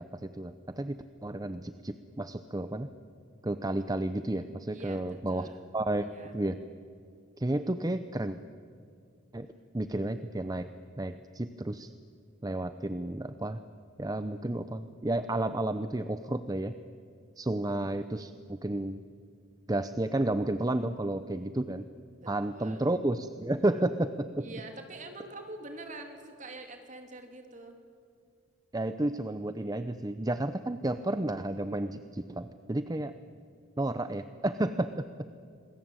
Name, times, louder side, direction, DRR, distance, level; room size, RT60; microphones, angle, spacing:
voice 1, 0.0-2.9 3.4-5.5 5.7-6.6 7.4-8.4 9.3-9.5 9.7-10.7 11.0-11.9 12.4-13.6 14.0-16.7 17.4-19.0 19.7-21.8 22.3-24.5 28.7-33.1 33.8-35.1, right 1 dB, 20° right, 11 dB, 0.7 m, -32 dB
voice 2, 4.7-5.6 6.0-6.3 22.2-22.8 24.4-27.8, right 2 dB, 40° right, 5 dB, 3.3 m, -45 dB
27.5 x 21.0 x 9.0 m, 2.4 s
head